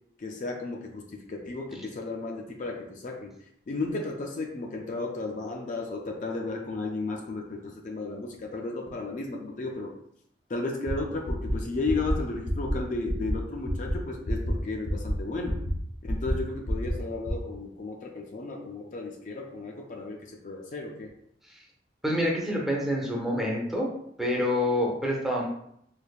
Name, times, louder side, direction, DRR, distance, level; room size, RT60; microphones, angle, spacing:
voice 1, 0.2-3.3 3.7-9.9 10.5-15.6 16.0-21.1, left 3 dB, 45° left, 1 dB, 0.4 m, -34 dB
sound 1, 10.9-11.0 11.2-11.5 11.8-12.1 12.4-12.7 13.0-13.3 13.6-13.9 14.2-14.5 14.8-15.1 15.4-15.7 16.0-16.3 16.6-16.9 17.2-17.3, equal, 65° left, 0.9 m, -28 dB
voice 2, 22.0-23.9 24.2-25.5, left 1 dB, ahead, -3 dB, 0.6 m, -27 dB
3.2 x 3.2 x 2.3 m, 0.73 s
head